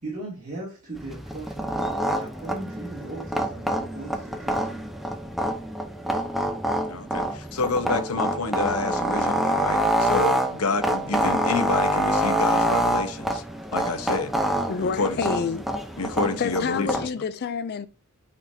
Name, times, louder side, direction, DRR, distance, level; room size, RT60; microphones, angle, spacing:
voice 1, 0.0-1.7 2.2-4.9, right 2 dB, 35° right, 2.4 m, -38 dB
sound 1, 1.0-17.1, right 1 dB, ahead, 0.7 m, -26 dB
voice 2, 6.9-13.4 13.7-15.2 16.0-16.9 17.2-17.3, left 3 dB, 90° left, 1.0 m, -29 dB
voice 3, 14.7-15.7 16.4-17.9, left 5 dB, 45° left, 0.4 m, -28 dB
8.9 x 4.2 x 2.8 m
head